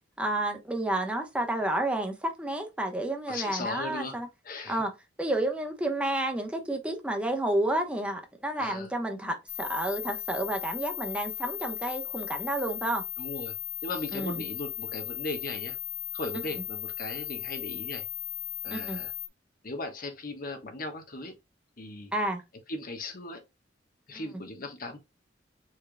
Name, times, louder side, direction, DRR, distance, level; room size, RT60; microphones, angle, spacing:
voice 1, 0.2-4.3 4.7-4.9 5.2-13.0 14.1-14.4 18.7-19.0 22.1-22.4 24.1-24.2, right 1 dB, 5° right, 1.0 m, -30 dB
voice 2, 3.3-4.2 4.4-4.8 8.6-8.9 13.2-13.5 13.8-15.8 16.1-18.1 18.6-19.1 19.6-21.3 21.8-22.1 22.7-23.4 24.1-25.0, left 2 dB, 50° left, 1.2 m, -37 dB
sound 1, 9.5-19.3, left 13 dB, 30° left, 0.5 m, -37 dB
4.8 x 4.5 x 2.3 m
head